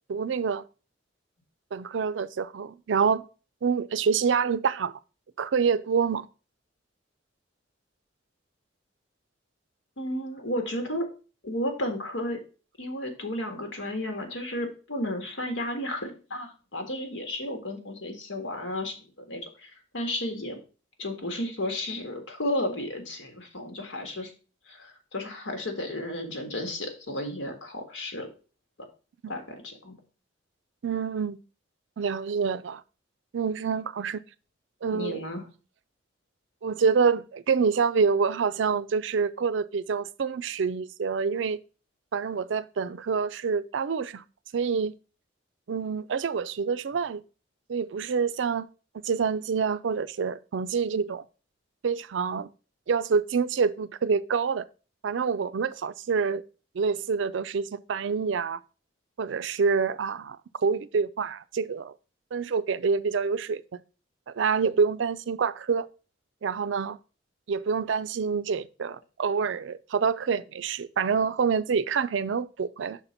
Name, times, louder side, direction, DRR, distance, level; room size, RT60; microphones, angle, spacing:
voice 1, 0.1-0.6 1.7-3.3 3.6-5.0 5.4-6.3 30.8-31.4 32.0-32.8 33.3-34.2 34.8-35.2 36.6-41.6 42.1-44.2 44.5-44.9 45.7-47.2 47.7-48.7 49.0-51.2 51.8-52.5 52.9-54.7 55.0-56.4 56.7-58.6 59.2-61.9 62.3-63.6 64.3-65.9 66.4-67.0 67.5-73.0, right 5 dB, 75° right, 0.4 m, -27 dB
voice 2, 10.0-11.1 11.4-12.4 12.8-20.6 21.0-24.3 24.7-28.3 29.3-30.0 34.9-35.4, left 1 dB, 85° left, 1.7 m, -33 dB
5.9 x 4.1 x 5.7 m
head